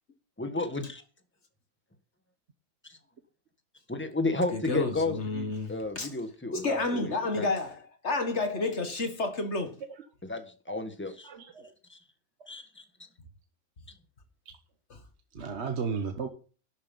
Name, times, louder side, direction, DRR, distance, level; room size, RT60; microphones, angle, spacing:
voice 1, 0.4-1.0 2.9-3.0 3.9-7.5 10.2-11.3 11.9-12.0 12.5-12.8, left 2 dB, 5° left, 1.4 m, -33 dB
voice 2, 4.5-6.1 6.5-9.8 14.9-15.0, left 3 dB, 40° left, 2.0 m, -30 dB
voice 3, 11.2-11.7 14.5-14.6 15.3-16.3, right 5 dB, 45° right, 1.2 m, -34 dB
12.0 x 8.9 x 5.5 m
omnidirectional pair, 1.8 m